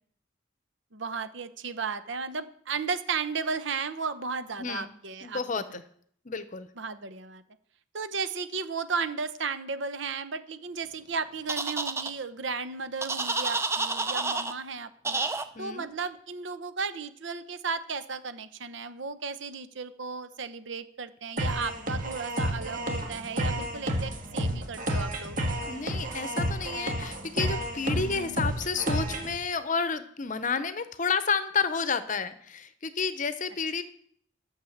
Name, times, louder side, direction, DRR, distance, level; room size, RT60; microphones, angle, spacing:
voice 1, 0.9-5.4 6.8-7.4 7.9-15.2 15.6-25.4 27.9-28.4, right 5 dB, 70° right, 12 dB, 0.9 m, -34 dB
voice 2, 4.6-4.9 5.2-5.8 6.2-6.7 15.5-15.8 25.6-33.8, left 5 dB, 40° left, 12 dB, 0.8 m, -30 dB
sound 1, 11.5-12.1 13.0-14.5 15.0-15.4, right 3 dB, 15° right, 0.6 m, -29 dB
sound 2, 21.4-29.4, equal, 45° right, 1.8 m, -31 dB
12.0 x 6.5 x 7.2 m, 0.63 s
head